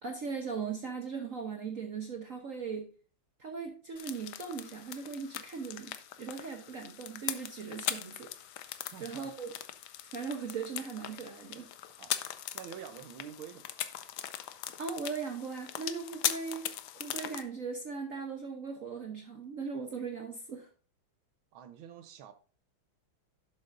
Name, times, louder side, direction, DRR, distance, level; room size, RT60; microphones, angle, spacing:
voice 1, 0.0-2.9 3.4-8.3 9.0-9.5 10.1-11.7 14.8-16.7 17.0-20.7, right 5 dB, 50° right, 1.0 m, -39 dB
sound 1, 4.0-17.4, left 11 dB, 70° left, 1.0 m, -40 dB
voice 2, 8.9-9.3 12.0-12.3 12.5-13.7 21.5-22.3, right 9 dB, 75° right, 1.6 m, -47 dB
11.0 x 7.7 x 2.5 m
omnidirectional pair, 2.3 m